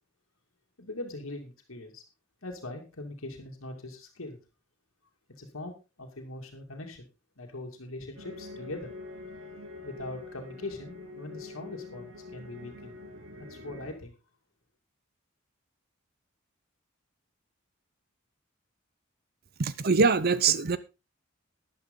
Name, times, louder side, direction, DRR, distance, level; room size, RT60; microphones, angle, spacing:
voice 1, 0.8-2.0 2.4-4.4 5.4-5.7 6.0-7.0 7.4-8.9 9.8-12.9 13.5-14.1, left 2 dB, 80° left, 2.5 m, -41 dB
sound 1, 8.2-13.9, left 3 dB, 80° right, 3.2 m, -45 dB
voice 2, 19.6-20.8, right 5 dB, 45° right, 0.7 m, -23 dB
12.0 x 10.5 x 3.8 m
head